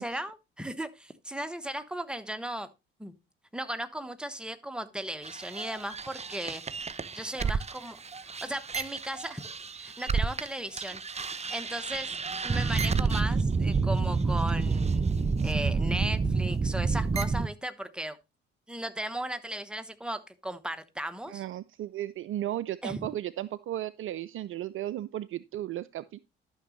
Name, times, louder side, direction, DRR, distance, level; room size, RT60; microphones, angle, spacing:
voice 1, 0.0-2.7 3.0-3.1 3.5-6.6 7.1-8.0 8.4-9.4 9.7-11.0 11.5-12.1 12.4-18.2 18.7-21.4 22.8-23.1, right 1 dB, 5° right, 1.1 m, -36 dB
sound 1, 5.2-10.5 10.8-17.5, right 4 dB, 20° right, 0.8 m, -29 dB
voice 2, 21.3-26.2, right 13 dB, 45° right, 0.5 m, -35 dB
12.5 x 6.1 x 3.1 m
figure-of-eight pair, 45°, 30 cm